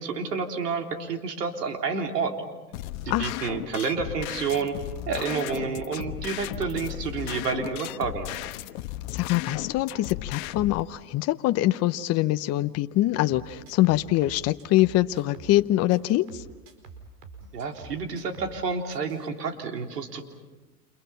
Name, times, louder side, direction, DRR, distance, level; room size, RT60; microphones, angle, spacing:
voice 1, 0.0-2.4 3.1-4.8 5.1-8.4 17.5-20.2, right 5 dB, 85° right, 4 dB, 3.6 m, -29 dB
sound 1, 2.7-10.8, left 15 dB, 60° left, 1.3 m, -35 dB
voice 2, 3.1-3.4 9.1-16.4, left 15 dB, 35° left, 10 dB, 0.8 m, -24 dB
sound 2, 13.3-15.6 15.9-18.6 18.9-19.3, right 4 dB, 65° right, 4.8 m, -47 dB
30.0 x 28.0 x 5.8 m, 1.2 s
hypercardioid pair, 115°, 47 cm